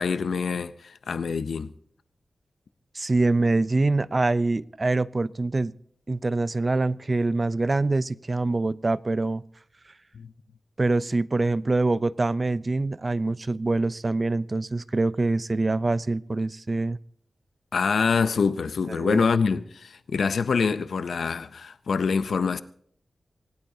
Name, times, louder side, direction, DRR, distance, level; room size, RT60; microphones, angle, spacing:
voice 1, 0.0-1.7 10.1-10.3 17.7-22.6, left 5 dB, 90° left, 0.6 m, -25 dB
voice 2, 2.9-5.7 6.1-9.4 10.8-17.0 19.0-19.2, right 2 dB, 35° right, 0.5 m, -25 dB
25.0 x 17.5 x 2.8 m
wide cardioid pair, 90°, 0 cm